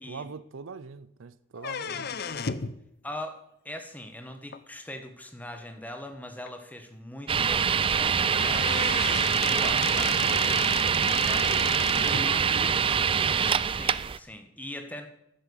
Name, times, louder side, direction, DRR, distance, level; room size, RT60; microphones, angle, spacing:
voice 1, 0.0-2.2 9.6-9.8 11.5-12.7, right 5 dB, 75° right, 0.6 m, -41 dB
sound 1, 1.6-2.8 4.5-4.6 5.5-5.6 6.1-6.2 6.5-6.6 7.9-8.0 8.3-12.3, left 6 dB, 55° left, 0.7 m, -35 dB
voice 2, 1.9-2.5 3.0-3.4 3.6-11.5 12.0-12.7 13.6-15.1, left 1 dB, 10° left, 1.3 m, -42 dB
sound 2, 7.3-14.2, right 7 dB, 25° right, 0.3 m, -24 dB
10.5 x 9.9 x 7.0 m
head